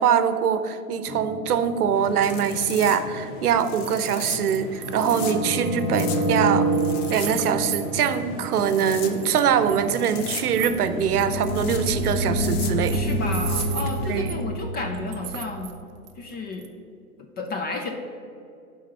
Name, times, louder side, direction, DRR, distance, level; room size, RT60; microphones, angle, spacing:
voice 1, 0.0-6.7 7.1-13.0 14.1-14.3, right 8 dB, 85° right, 11 dB, 0.8 m, -23 dB
sound 1, 1.1-2.5 4.8-9.2 10.6-15.6, right 1 dB, 70° left, 1.6 m, -28 dB
sound 2, 1.9-14.2, left 4 dB, 40° left, 0.9 m, -36 dB
sound 3, 3.8-4.0 4.2-8.2 8.6-14.4 14.9-15.8 16.1-16.7, right 10 dB, 25° right, 0.6 m, -37 dB
voice 2, 12.9-15.7 16.2-16.6 17.4-17.9, left 3 dB, 20° left, 3 dB, 0.6 m, -31 dB
11.0 x 3.9 x 5.5 m, 2.5 s
hypercardioid pair, 115°, 44 cm